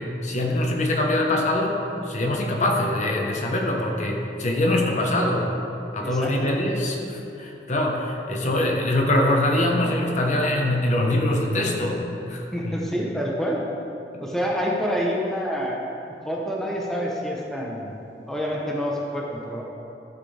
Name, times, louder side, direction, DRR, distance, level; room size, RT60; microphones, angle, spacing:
voice 1, 0.0-1.8 2.0-5.5 5.9-12.0 12.3-12.7, left 1 dB, 40° left, 0 dB, 1.1 m, -23 dB
voice 2, 6.0-6.6 12.5-13.6 14.2-15.8 16.2-17.9 18.3-19.6, equal, 5° left, -3 dB, 0.9 m, -27 dB
13.5 x 7.5 x 3.4 m, 2.9 s
head